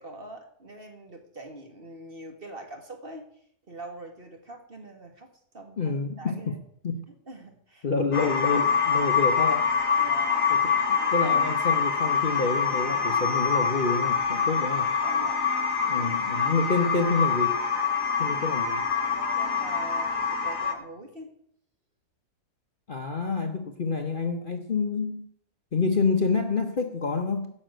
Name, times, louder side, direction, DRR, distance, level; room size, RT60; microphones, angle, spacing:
voice 1, 0.0-3.3 3.7-5.9 6.2-6.6 7.3-7.9 9.9-10.8 15.0-15.4 18.2-18.4 19.0-21.3, right 2 dB, 35° right, 3 dB, 2.1 m, -44 dB
voice 2, 5.8-6.6 6.8-7.0 7.8-9.7 10.5-10.6 11.1-14.8 15.9-17.6 18.2-18.8 22.9-25.3 25.7-27.5, left 4 dB, 40° left, 5 dB, 1.0 m, -28 dB
sound 1, 8.1-20.7, left 6 dB, 60° left, 1.6 m, -25 dB
15.5 x 6.5 x 7.7 m, 0.68 s
omnidirectional pair, 1.7 m